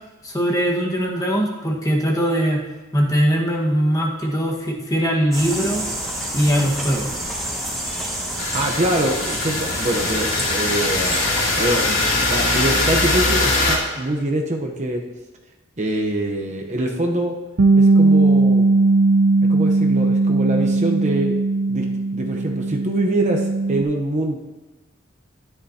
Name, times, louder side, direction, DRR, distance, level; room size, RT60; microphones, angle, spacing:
voice 1, 0.2-2.6 2.9-5.9 6.3-7.1, equal, 20° left, -2 dB, 1.5 m, -21 dB
sound 1, 5.3-13.7, right 1 dB, ahead, 2.9 m, -29 dB
sound 2, 8.4-13.8, left 2 dB, 80° left, 2.8 m, -22 dB
voice 2, 8.5-15.0 15.8-17.4 17.8-18.7 19.5-21.4 21.7-21.9 22.1-24.4, right 1 dB, 35° right, 1 dB, 0.9 m, -24 dB
Bass guitar, 17.6-23.8, right 3 dB, 60° right, 0.5 m, -18 dB
13.5 x 10.5 x 2.9 m, 1.1 s
head